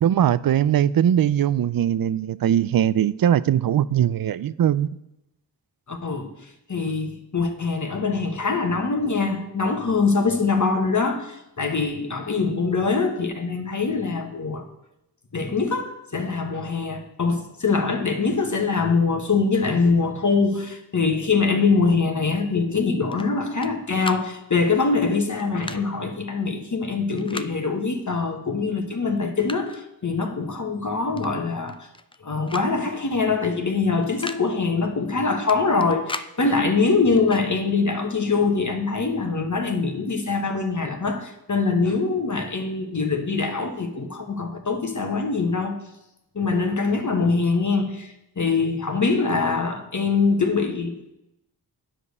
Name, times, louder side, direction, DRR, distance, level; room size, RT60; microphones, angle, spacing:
voice 1, 0.0-4.9, right 10 dB, 55° right, 0.5 m, -20 dB
voice 2, 5.9-14.7 15.3-31.9 32.2-45.8 46.3-51.1, left 4 dB, 45° left, 1.2 m, -23 dB
sound 1, 23.1-23.7 24.0-24.3 25.4-25.8 27.1-27.5 28.6-28.7 29.1-29.8 31.2-31.3 31.6-32.2 32.5-32.7 33.0-33.1 34.0-34.4 35.5-36.3 37.2-37.4, left 2 dB, 15° left, 0.4 m, -36 dB
9.8 x 5.2 x 6.6 m
cardioid pair, 55°, 42 cm